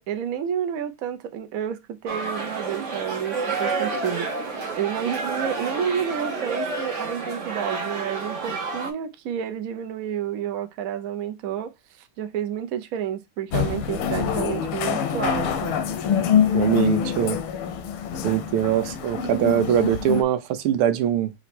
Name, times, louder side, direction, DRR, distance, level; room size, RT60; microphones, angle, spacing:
voice 1, 0.0-15.7, right 9 dB, 70° right, 0.8 m, -30 dB
sound 1, 2.1-8.9, right 4 dB, 45° right, 1.1 m, -29 dB
sound 2, 13.5-20.2, left 8 dB, 85° left, 1.6 m, -25 dB
voice 2, 16.5-17.4 18.2-21.3, right 10 dB, 85° right, 1.6 m, -22 dB
4.3 x 2.8 x 4.2 m
omnidirectional pair, 2.3 m